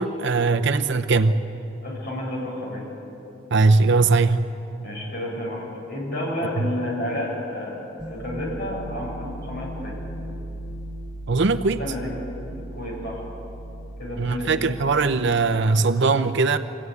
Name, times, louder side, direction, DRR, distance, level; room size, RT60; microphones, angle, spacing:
voice 1, 0.0-1.3 3.5-4.4 11.3-11.8 14.2-16.6, right 3 dB, 60° right, 8 dB, 0.7 m, -20 dB
voice 2, 1.8-2.9 4.8-10.0 11.8-12.1 12.7-13.2 14.0-14.7, left 1 dB, 50° left, -3 dB, 8.0 m, -31 dB
sound 1, 8.0-15.2, right 1 dB, 5° right, 1.9 m, -37 dB
23.5 x 16.0 x 9.5 m, 2.8 s
head